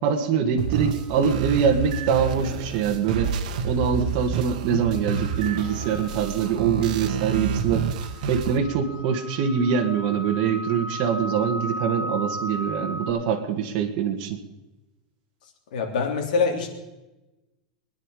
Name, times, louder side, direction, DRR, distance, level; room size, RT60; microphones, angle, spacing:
voice 1, 0.0-3.3 3.6-7.8 8.3-14.4, right 7 dB, 45° right, 2 dB, 1.8 m, -24 dB
sound 1, 0.6-8.6, right 6 dB, 70° right, 1.4 m, -29 dB
sound 2, 0.8-1.1 4.8-13.1, equal, 50° left, 5.0 m, -36 dB
voice 2, 15.7-16.7, left 5 dB, 75° left, 3 dB, 3.3 m, -24 dB
23.0 x 10.5 x 4.9 m, 1.0 s
supercardioid pair, 160°, 4 cm